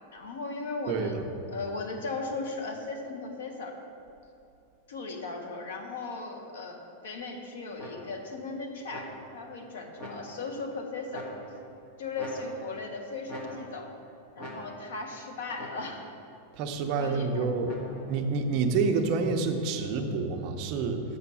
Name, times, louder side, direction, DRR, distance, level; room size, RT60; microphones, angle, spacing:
voice 1, 0.1-1.2 1.5-3.7 4.9-11.3 12.0-13.9 14.3-16.1 17.0-17.5, left 3 dB, 90° left, 3 dB, 1.3 m, -37 dB
voice 2, 0.9-1.3 16.5-21.0, right 4 dB, 35° right, 4 dB, 0.7 m, -28 dB
sound 1, 7.8-8.4 8.9-9.5 10.0-10.6 11.1-11.8 12.2-12.9 13.3-14.0 14.4-15.1 15.6-16.2 17.6-18.3, equal, 40° left, 1.4 m, -44 dB
6.8 x 5.8 x 7.1 m, 2.6 s
supercardioid pair, 170°, 0 cm